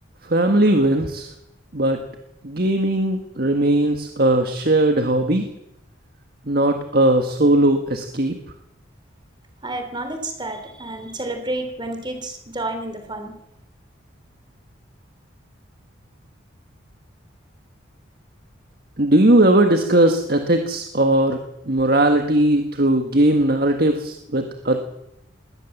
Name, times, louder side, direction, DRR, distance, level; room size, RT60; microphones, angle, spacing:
voice 1, 0.2-1.3 1.7-2.0 2.4-5.4 6.5-8.4 19.0-21.4 21.7-24.8, right 1 dB, 50° right, 5 dB, 1.7 m, -18 dB
voice 2, 9.6-13.3, right 2 dB, 25° right, 6 dB, 3.4 m, -30 dB
21.0 x 18.0 x 7.3 m, 0.82 s
head